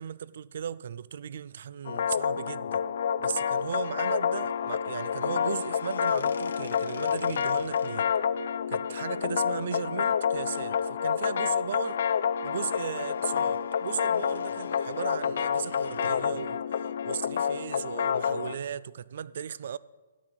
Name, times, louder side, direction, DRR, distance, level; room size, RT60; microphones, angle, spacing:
voice 1, 0.0-8.1 8.7-12.0 12.4-19.8, right 8 dB, 55° right, 0.4 m, -37 dB
sound 1, 1.9-18.5, left 7 dB, 55° left, 0.5 m, -29 dB
sound 2, 5.0-7.9 10.1-10.2 10.5-10.8 11.3-16.2, left 5 dB, 90° left, 1.1 m, -49 dB
12.5 x 9.2 x 6.2 m
hypercardioid pair, 165°, 0 cm